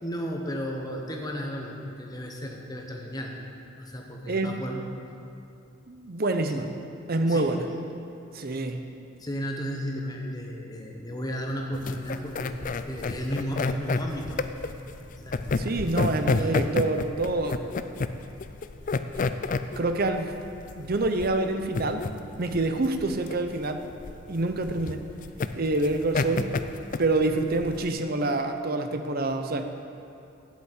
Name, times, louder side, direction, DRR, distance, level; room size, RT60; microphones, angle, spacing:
voice 1, 0.0-3.4 3.8-5.0 6.5-6.7 7.3-7.7 9.2-14.4 15.0-15.9 16.4-16.5, equal, 20° left, 1 dB, 1.0 m, -34 dB
voice 2, 5.9-6.7 7.1-7.6 8.3-8.8 15.6-17.6 19.8-20.3 20.8-22.1 22.4-23.8 24.3-25.0 25.5-26.5 27.0-29.7, right 2 dB, 45° right, 7 dB, 0.6 m, -26 dB
sound 1, 11.7-27.9, left 4 dB, 35° left, 0.3 m, -30 dB
8.3 x 8.3 x 8.1 m, 2.7 s
head